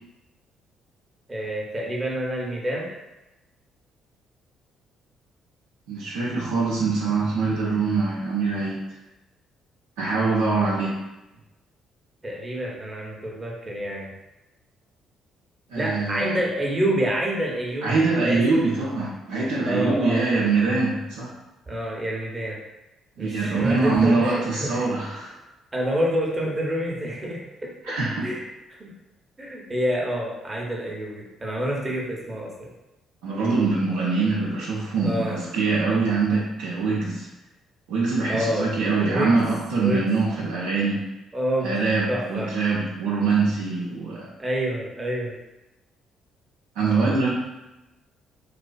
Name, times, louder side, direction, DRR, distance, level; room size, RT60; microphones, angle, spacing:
voice 1, 1.3-2.9 12.2-14.1 15.8-18.4 19.6-20.3 21.7-22.6 23.2-24.9 25.7-27.7 28.2-28.4 28.8-28.9 29.4-32.7 35.0-35.4 38.3-38.7 39.1-39.3 39.8-40.0 41.3-42.5 44.4-45.4, equal, 25° right, -2 dB, 0.7 m, -28 dB
voice 2, 5.9-8.8 10.0-10.9 15.7-16.4 17.8-21.3 23.2-25.4 27.8-28.3 33.2-37.3 37.9-41.0 41.6-44.3 46.8-47.3, right 4 dB, 70° right, -5 dB, 0.4 m, -23 dB
2.4 x 2.4 x 2.2 m, 0.99 s
figure-of-eight pair, 45°, 0 cm